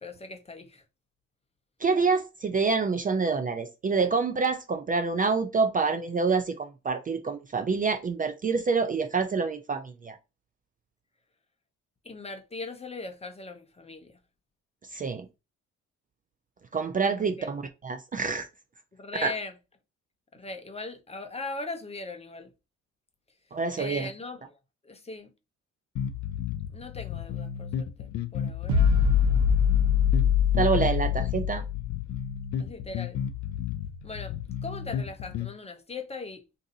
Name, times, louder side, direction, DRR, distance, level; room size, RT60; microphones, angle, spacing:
voice 1, 0.0-0.8 12.0-14.1 17.4-17.5 18.9-19.5 20.3-22.5 23.8-24.6 24.8-25.3 26.7-28.9 32.6-33.2 34.0-34.4 34.6-36.4, left 3 dB, 20° left, 0.6 m, -39 dB
voice 2, 1.8-10.2 14.9-15.3 16.7-18.5 19.2-19.3 23.5-24.1 30.5-31.6, right 4 dB, 30° right, 0.4 m, -27 dB
sound 1, 26.0-35.5, left 9 dB, 70° left, 0.5 m, -34 dB
sound 2, 28.7-32.1, left 7 dB, 75° right, 0.8 m, -23 dB
2.7 x 2.6 x 3.8 m
cardioid pair, 90°, 30 cm